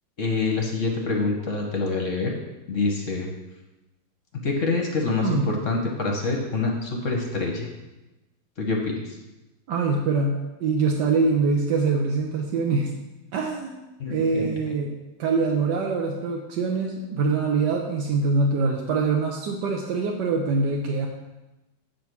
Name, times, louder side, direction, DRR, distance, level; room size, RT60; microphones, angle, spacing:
voice 1, 0.2-2.4 2.7-3.3 4.4-7.7 8.6-9.2 14.0-14.5, left 3 dB, 45° left, 1 dB, 1.2 m, -26 dB
voice 2, 9.7-12.9 13.3-13.8 14.1-21.1, right 4 dB, 65° right, 0 dB, 1.3 m, -24 dB
8.1 x 5.1 x 6.0 m, 1.0 s
omnidirectional pair, 2.3 m